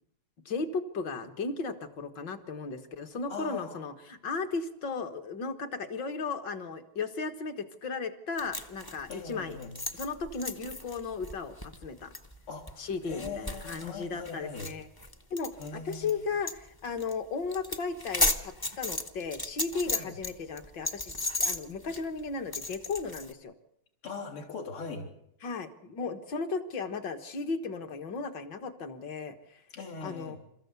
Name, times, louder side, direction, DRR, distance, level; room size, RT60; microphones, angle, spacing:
voice 1, 0.5-9.6 9.9-12.1 12.8-14.9 15.3-23.5 25.4-29.6 30.0-30.4, left 4 dB, 55° left, 7 dB, 2.1 m, -35 dB
voice 2, 3.3-3.8 9.1-9.8 12.5-14.7 15.6-16.3 19.9-20.1 24.0-25.1 29.7-30.4, left 4 dB, 80° left, -1 dB, 4.4 m, -40 dB
sound 1, 8.4-16.1 16.5-16.6 16.8-17.1 17.4-20.3 20.6-23.3, left 2 dB, 20° left, 0.6 m, -34 dB
28.0 x 14.5 x 8.2 m, 0.80 s
omnidirectional pair, 2.4 m